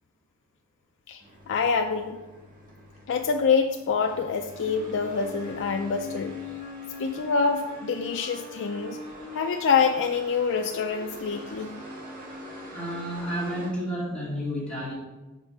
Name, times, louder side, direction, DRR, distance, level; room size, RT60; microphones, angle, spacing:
sound 1, 1.2-13.7, left 2 dB, 40° right, 1.6 m, -42 dB
voice 1, 1.5-2.2 3.1-6.3 7.0-9.0 9.3-11.8, left 5 dB, 55° left, 4 dB, 0.4 m, -26 dB
voice 2, 12.7-14.9, equal, 5° left, -8 dB, 2.1 m, -31 dB
5.2 x 4.9 x 5.2 m, 1.1 s
head